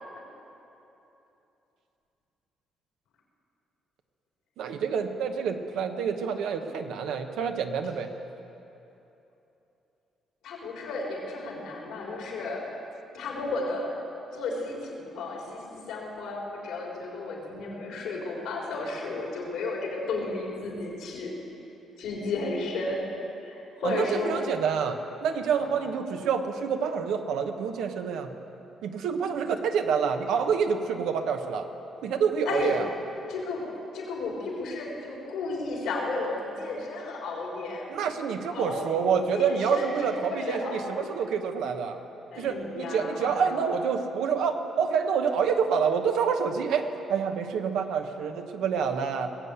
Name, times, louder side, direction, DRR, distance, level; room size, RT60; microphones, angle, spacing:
voice 1, 4.6-8.1 23.8-28.3 28.8-31.7 32.0-32.8 37.9-42.0 42.4-49.3, right 6 dB, 85° right, 5 dB, 1.1 m, -27 dB
voice 2, 10.4-12.6 13.1-14.0 14.3-21.3 22.0-23.0 23.4-24.4 25.5-25.9 32.5-32.7 33.3-33.6 33.9-37.9 38.5-38.9 39.3-41.2 42.3-43.8, left 3 dB, 90° left, -2 dB, 3.7 m, -33 dB
19.5 x 8.0 x 8.1 m, 3.0 s
cardioid pair, 90°, 0 cm